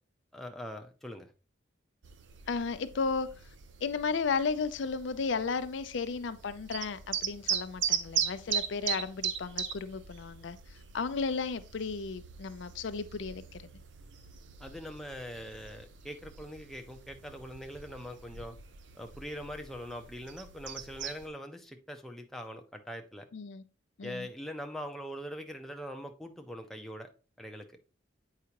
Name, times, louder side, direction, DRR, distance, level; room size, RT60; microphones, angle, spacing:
voice 1, 0.3-1.3 14.6-18.6 18.9-23.3 24.0-27.1 27.4-27.7, equal, ahead, 0.6 m, -42 dB
sound 1, 2.0-21.3, right 8 dB, 70° right, 0.6 m, -39 dB
voice 2, 2.5-3.3 3.8-13.6 23.3-23.6 24.0-24.3, left 5 dB, 70° left, 0.5 m, -34 dB
8.2 x 4.8 x 2.9 m
head